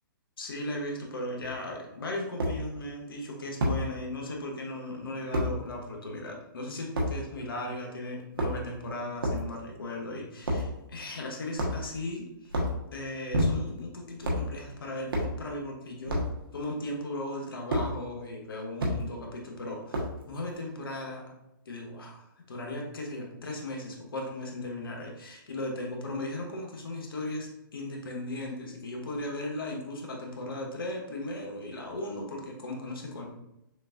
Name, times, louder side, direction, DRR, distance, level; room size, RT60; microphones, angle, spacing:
voice 1, 0.4-12.5 12.9-16.2 16.5-21.2 21.7-33.3, left 1 dB, 80° left, 0 dB, 1.1 m, -37 dB
sound 1, 1.4-1.5 2.4-2.6 3.6-3.8 5.3-5.5 7.0-7.1 8.2-8.8 9.2-9.4 10.4-10.7 11.6-12.0 12.5-12.8 13.3-13.8 14.2-14.5 15.1-15.3 16.1-16.3 17.7-17.9 18.8-19.0 19.9-20.2, equal, 80° right, 1.2 m, -28 dB
6.4 x 2.5 x 2.4 m, 0.89 s
hypercardioid pair, 140°, 12 cm